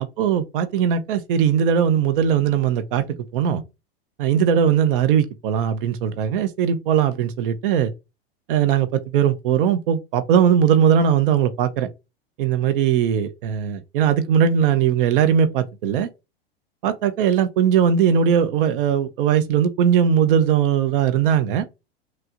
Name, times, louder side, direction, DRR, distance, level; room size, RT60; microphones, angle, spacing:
voice 1, 0.0-3.0 3.3-3.6 4.2-7.9 8.5-11.9 12.4-16.1 16.8-21.7, right 8 dB, 60° right, 0.7 m, -19 dB
5.9 x 2.3 x 2.5 m
hypercardioid pair, 105°, 30 cm